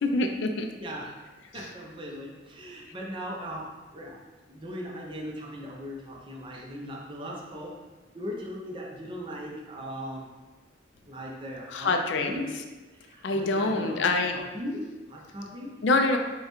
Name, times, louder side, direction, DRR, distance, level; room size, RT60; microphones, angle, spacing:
voice 1, 0.0-0.7 11.7-12.4 13.2-14.4 15.8-16.2, left 3 dB, 70° left, 5 dB, 0.4 m, -25 dB
voice 2, 0.7-1.2 1.5-4.2 4.5-7.8 8.1-10.3 11.1-12.5 13.0-15.8, equal, 25° right, -2 dB, 0.5 m, -38 dB
5.5 x 2.2 x 3.0 m, 1.2 s
head